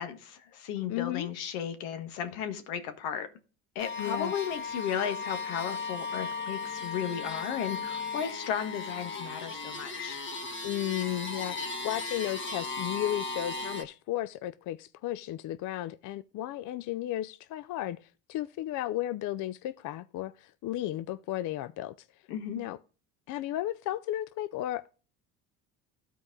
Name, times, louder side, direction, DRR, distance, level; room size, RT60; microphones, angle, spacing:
voice 1, 0.0-3.3 3.7-10.2 22.3-22.6, left 8 dB, 80° left, 1.4 m, -35 dB
voice 2, 0.9-1.3 4.0-4.3 10.6-21.9 22.6-22.8 23.3-24.9, left 14 dB, 50° left, 0.5 m, -34 dB
sound 1, 3.8-13.8, left 4 dB, 30° left, 1.9 m, -36 dB
12.5 x 4.6 x 3.8 m
supercardioid pair, 80°, 40 cm